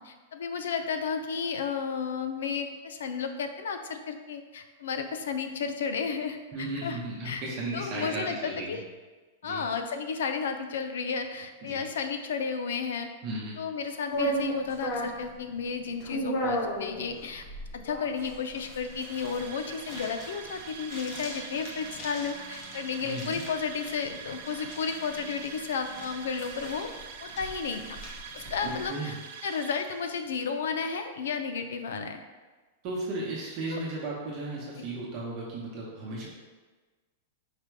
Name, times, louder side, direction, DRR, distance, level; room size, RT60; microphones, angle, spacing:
voice 1, 0.0-7.0 7.2-7.4 7.7-8.8 9.4-13.1 13.6-17.5 17.7-26.9 27.2-27.8 28.3-29.1 29.4-32.2 33.7-33.8, left 6 dB, 90° left, 7 dB, 0.4 m, -33 dB
voice 2, 6.5-8.8 9.4-9.7 11.6-11.8 13.2-13.6 23.0-23.4 28.6-29.1 32.8-36.3, right 2 dB, 35° right, -5 dB, 0.8 m, -35 dB
sound 1, 14.1-28.9, right 1 dB, 35° left, 0.8 m, -37 dB
sound 2, 18.6-30.5, right 6 dB, 55° right, 0.4 m, -44 dB
4.9 x 2.2 x 4.5 m, 1.3 s
supercardioid pair, 165°, 0 cm